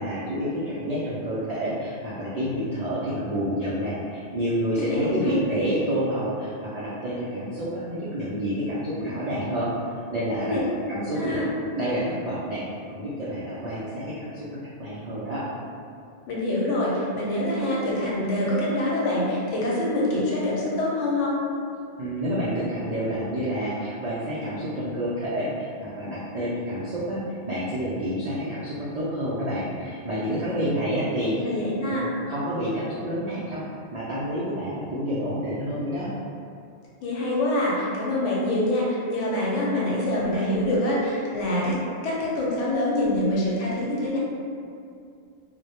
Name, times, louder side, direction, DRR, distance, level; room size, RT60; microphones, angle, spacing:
voice 1, 0.0-9.7 10.1-10.6 10.9-11.4 11.8-12.6 12.9-15.4 22.0-27.2 27.5-31.3 31.8-32.0 32.3-33.6 33.9-36.1, equal, 90° right, -9 dB, 0.3 m, -29 dB
voice 2, 4.9-5.4 10.4-10.6 11.1-11.5 16.3-21.4 31.3-32.1 37.0-41.8 42.0-44.2, left 1 dB, 80° left, -5 dB, 0.9 m, -25 dB
2.1 x 2.1 x 2.8 m, 2.4 s
omnidirectional pair, 1.2 m